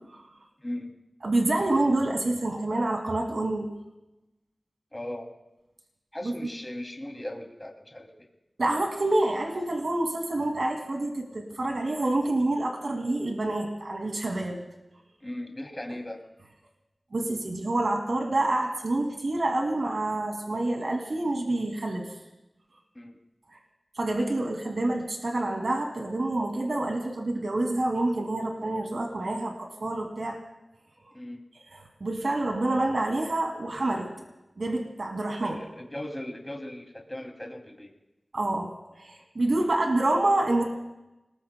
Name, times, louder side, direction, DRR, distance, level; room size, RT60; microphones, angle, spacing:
voice 1, 0.6-0.9 4.9-5.3 6.1-8.3 15.2-16.2 22.9-23.2 31.1-31.4 35.4-37.9 39.6-39.8, left 1 dB, 20° left, 2 dB, 2.7 m, -38 dB
voice 2, 1.2-3.7 6.2-6.3 8.6-14.6 17.1-22.1 24.0-30.4 31.7-34.1 34.6-35.6 38.3-38.7 39.0-40.6, right 2 dB, 75° right, 1 dB, 2.4 m, -27 dB
30.0 x 20.5 x 2.3 m, 0.97 s
wide cardioid pair, 55°, 0 cm